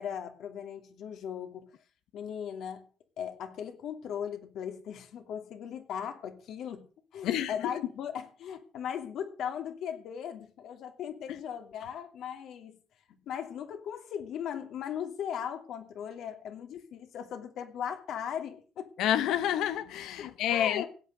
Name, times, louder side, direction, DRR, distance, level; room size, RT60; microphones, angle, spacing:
voice 1, 0.0-1.7 2.1-2.9 3.2-6.9 7.1-12.8 13.3-18.9 20.2-20.9, left 8 dB, 65° left, 2.8 m, -38 dB
voice 2, 7.2-7.5 19.0-20.8, left 11 dB, 80° left, 1.0 m, -28 dB
16.5 x 9.0 x 6.7 m
cardioid pair, 135°, 0 cm